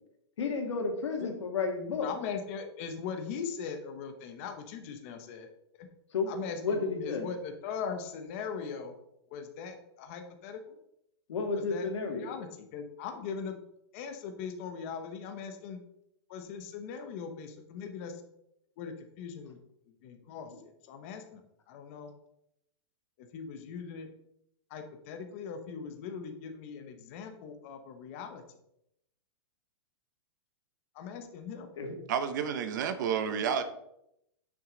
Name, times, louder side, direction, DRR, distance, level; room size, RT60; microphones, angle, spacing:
voice 1, 0.4-2.1 6.1-7.3 11.3-12.3 20.5-20.6 31.8-32.0, left 4 dB, 90° left, 2 dB, 2.1 m, -32 dB
voice 2, 2.0-5.5 6.3-8.9 9.3-10.8 11.7-11.9 12.1-13.6 13.9-15.8 16.3-18.2 18.8-19.6 20.0-20.5 20.9-21.4 21.7-22.1 23.2-24.1 24.7-28.4 30.9-31.7, left 6 dB, 30° left, 6 dB, 0.8 m, -40 dB
voice 3, 32.1-33.6, right 7 dB, 40° right, 9 dB, 0.8 m, -30 dB
9.3 x 6.1 x 3.9 m, 0.79 s
supercardioid pair, 175°, 15 cm